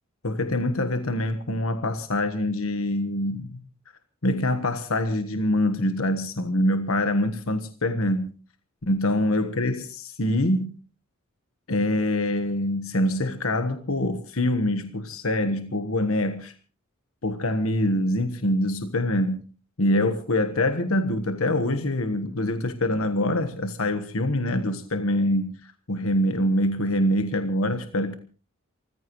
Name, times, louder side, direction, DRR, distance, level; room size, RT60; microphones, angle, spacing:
voice 1, 0.2-3.6 4.2-8.3 8.9-10.8 11.7-16.5 17.2-19.4 19.8-28.1, left 1 dB, 90° left, 1.4 m, -25 dB
28.5 x 15.0 x 3.2 m
head